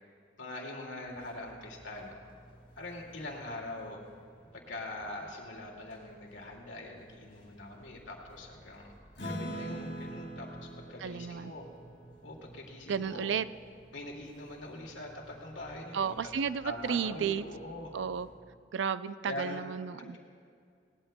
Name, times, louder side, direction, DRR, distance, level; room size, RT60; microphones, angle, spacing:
voice 1, 0.4-2.1 2.8-4.0 4.5-8.9 9.2-11.7 12.2-13.3 13.9-16.3 16.6-17.9 19.2-19.6 20.0-20.2, left 1 dB, 80° left, 0 dB, 2.1 m, -43 dB
sound 1, 1.0-18.3, right 1 dB, 30° left, 3.9 m, -58 dB
Acoustic guitar / Strum, 9.2-14.0, equal, 65° left, 2.3 m, -43 dB
voice 2, 11.0-11.5 12.9-13.5 15.9-17.4 17.9-18.3 18.7-20.2, right 7 dB, 75° right, 14 dB, 0.4 m, -33 dB
20.0 x 17.5 x 2.2 m, 2.2 s
head